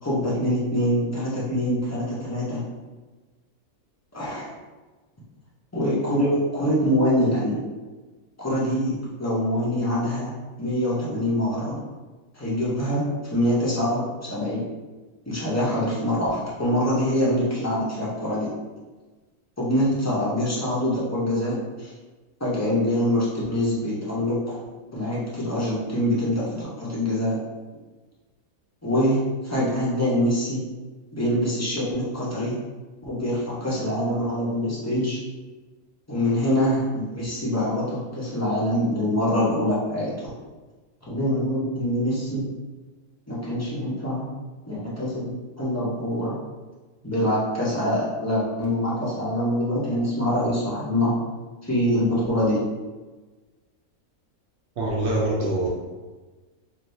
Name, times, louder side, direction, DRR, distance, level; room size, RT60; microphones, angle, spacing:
voice 1, 0.0-2.6 4.1-4.5 5.7-7.6 8.4-10.3 10.6-11.8 12.3-14.7 15.3-18.5 19.6-21.9 22.4-24.6 24.9-27.4 28.8-30.6 31.1-32.5 33.0-35.2 36.1-40.3 41.1-42.5 43.3-44.3 44.7-46.3 47.0-51.1 51.6-52.6, equal, 25° left, -8 dB, 0.3 m, -24 dB
voice 2, 54.8-55.7, right 1 dB, 60° right, -5 dB, 0.8 m, -24 dB
3.2 x 2.5 x 2.6 m, 1.3 s
omnidirectional pair, 1.5 m